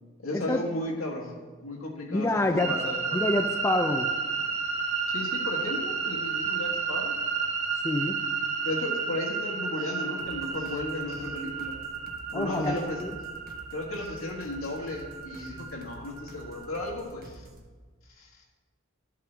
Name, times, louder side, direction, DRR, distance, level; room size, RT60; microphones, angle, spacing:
voice 1, 0.2-3.2 5.1-7.2 8.6-11.7 12.3-13.0 13.7-17.5 18.0-18.4, left 2 dB, 70° left, 0 dB, 1.6 m, -35 dB
voice 2, 2.1-2.7 3.1-4.1 7.8-8.2 12.3-13.1, left 2 dB, 15° left, 5 dB, 0.3 m, -27 dB
sound 1, 2.6-16.9, right 5 dB, 60° right, 1.8 m, -32 dB
sound 2, 10.2-17.7, right 1 dB, 40° right, 1.0 m, -49 dB
12.0 x 8.3 x 3.4 m, 1.4 s
head